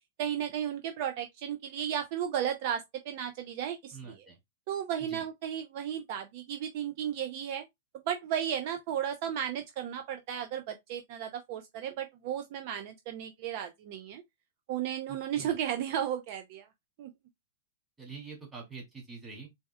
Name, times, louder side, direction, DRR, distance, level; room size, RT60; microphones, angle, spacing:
voice 1, 0.2-4.2 4.7-7.7 7.9-14.2 14.7-16.7 17.0-17.1, right 9 dB, 50° right, 0.6 m, -34 dB
voice 2, 3.9-4.4 5.1-5.2 15.1-15.5 18.0-19.5, right 4 dB, 10° right, 2.3 m, -45 dB
4.1 x 3.5 x 2.2 m
hypercardioid pair, 135°, 0 cm